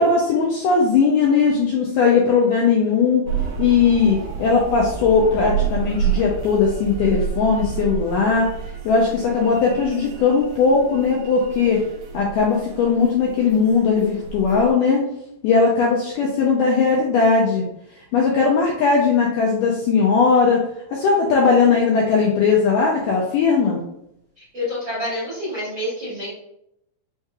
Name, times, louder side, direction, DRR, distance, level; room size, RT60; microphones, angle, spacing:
voice 1, 0.0-3.3 3.6-8.5 8.8-11.8 12.1-15.1 15.4-17.6 18.1-20.6 20.9-23.8, left 5 dB, 80° left, -2 dB, 1.9 m, -18 dB
sound 1, 3.2-14.7, right 8 dB, 80° right, 1.9 m, -30 dB
voice 2, 24.4-26.3, left 1 dB, 55° right, -10 dB, 1.3 m, -28 dB
5.6 x 2.9 x 2.3 m, 0.79 s
omnidirectional pair, 4.3 m